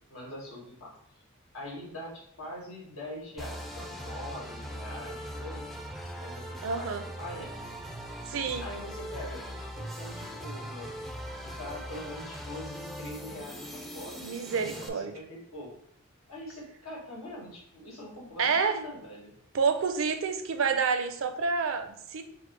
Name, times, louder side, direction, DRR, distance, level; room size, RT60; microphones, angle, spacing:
voice 1, 0.1-0.9 1.5-5.6 6.0-7.6 8.6-10.9 11.4-15.7 16.3-19.3, left 1 dB, 80° left, -3 dB, 1.8 m, -43 dB
sound 1, 3.4-14.9, equal, ahead, 0.4 m, -40 dB
voice 2, 6.6-7.0 8.2-8.7 14.2-15.1 18.4-18.8 19.5-22.2, right 5 dB, 70° right, 8 dB, 0.5 m, -28 dB
4.8 x 2.1 x 4.5 m, 0.71 s
head